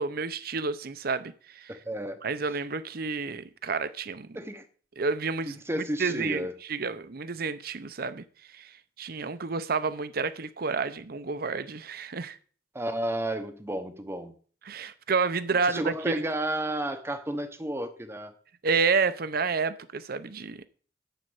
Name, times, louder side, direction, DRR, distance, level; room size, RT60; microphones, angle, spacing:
voice 1, 0.0-1.7 2.2-4.3 5.0-8.2 8.5-8.7 9.0-12.4 14.7-16.2 18.6-20.7, right 4 dB, 55° right, 0.7 m, -30 dB
voice 2, 1.7-2.2 4.3-4.7 5.5-6.6 12.7-14.4 15.5-18.3, right 1 dB, 15° right, 0.8 m, -32 dB
12.0 x 4.4 x 7.8 m
head